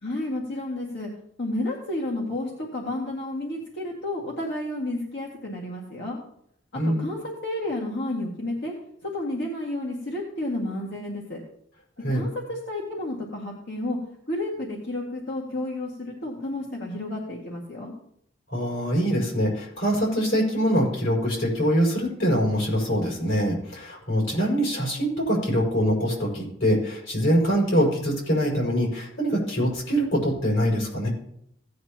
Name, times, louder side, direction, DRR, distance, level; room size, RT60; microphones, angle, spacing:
voice 1, 0.0-1.1 1.4-6.2 6.7-8.7 9.0-11.4 12.1-14.0 14.3-17.9, left 1 dB, 60° left, -3 dB, 2.0 m, -31 dB
voice 2, 6.7-7.1 12.0-12.3 18.5-31.1, equal, 80° left, -2 dB, 5.7 m, -24 dB
17.0 x 9.5 x 2.9 m, 0.71 s
head